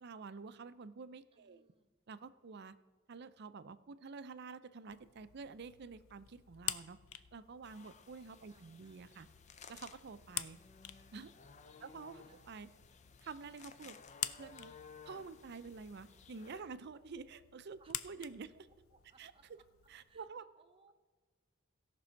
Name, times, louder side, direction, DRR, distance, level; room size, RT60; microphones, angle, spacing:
voice 1, 0.0-1.7 2.1-2.8 3.1-7.0 7.3-9.3 9.7-10.6 11.1-11.3 11.8-12.7 13.2-14.0 14.4-14.7 15.0-18.7 19.2-19.3 19.9-20.5, right 4 dB, 55° right, 13 dB, 0.5 m, -49 dB
voice 2, 1.3-1.9 8.5-9.0 11.7-12.0 12.2-12.5 17.8-18.0 18.9-19.6 20.1-20.3 20.5-20.9, right 3 dB, 25° right, 8 dB, 0.9 m, -69 dB
sound 1, 4.9-20.2, left 13 dB, 90° left, 0.5 m, -48 dB
sound 2, 7.6-16.6, left 5 dB, 35° left, 0.5 m, -58 dB
17.0 x 6.1 x 4.5 m, 1.4 s
head